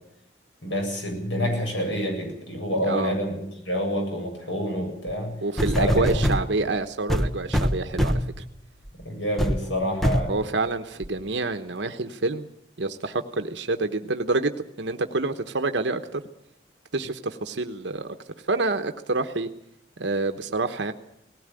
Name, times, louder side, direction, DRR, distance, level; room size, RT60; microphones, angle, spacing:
voice 1, 0.6-5.3 5.7-6.3 9.0-10.3, equal, 90° left, 3 dB, 7.8 m, -27 dB
sound 1, 5.1-5.2 5.6-6.5 7.1-8.4 8.9-9.0 9.4-9.6 10.0-10.3 11.0-11.1, equal, ahead, 1.2 m, -24 dB
voice 2, 5.4-8.4 10.3-12.5 12.8-14.5 14.8-16.2 16.9-18.2 18.5-19.5 20.0-20.9, right 3 dB, 75° right, 8 dB, 1.1 m, -27 dB
19.0 x 16.5 x 9.0 m, 0.74 s
head